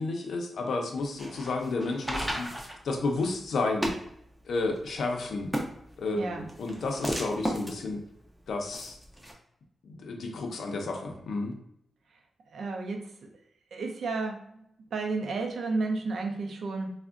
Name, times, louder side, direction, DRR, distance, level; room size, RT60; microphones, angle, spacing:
voice 1, 0.0-3.9 4.5-5.5 6.0-8.0 8.5-9.0 9.8-11.5, left 3 dB, 75° left, 2 dB, 0.5 m, -31 dB
sound 1, 1.0-9.3, equal, 5° right, 0.4 m, -36 dB
voice 2, 6.2-6.5 12.5-13.1 13.7-14.6 14.9-16.9, right 3 dB, 65° right, 3 dB, 0.4 m, -32 dB
3.4 x 2.1 x 2.4 m, 0.76 s
wide cardioid pair, 160°, 0 cm